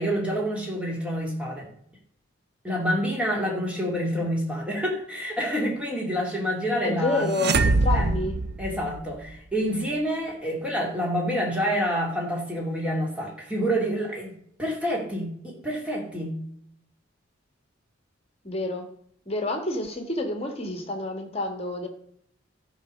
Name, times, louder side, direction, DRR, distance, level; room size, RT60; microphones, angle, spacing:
voice 1, 0.0-1.7 2.6-7.3 7.9-8.1 8.6-14.3 14.6-16.4, equal, 5° right, -2 dB, 2.7 m, -28 dB
voice 2, 6.8-8.3 18.4-18.9 19.3-21.9, left 2 dB, 30° left, 5 dB, 1.7 m, -28 dB
sound 1, 7.3-9.3, right 3 dB, 55° right, 0.8 m, -23 dB
13.0 x 5.0 x 6.4 m, 0.69 s
head